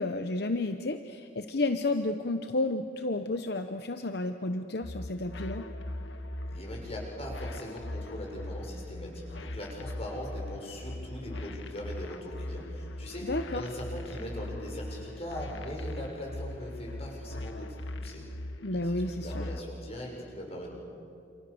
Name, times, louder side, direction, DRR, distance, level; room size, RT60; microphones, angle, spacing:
voice 1, 0.0-5.6 13.3-13.6 18.6-19.5, left 2 dB, 60° left, 7 dB, 0.9 m, -31 dB
sound 1, 4.8-19.6, left 1 dB, 80° left, 1.5 m, -40 dB
voice 2, 6.5-18.2 18.7-20.7, left 1 dB, 35° left, -1 dB, 6.7 m, -40 dB
29.0 x 28.0 x 7.1 m, 2.6 s
head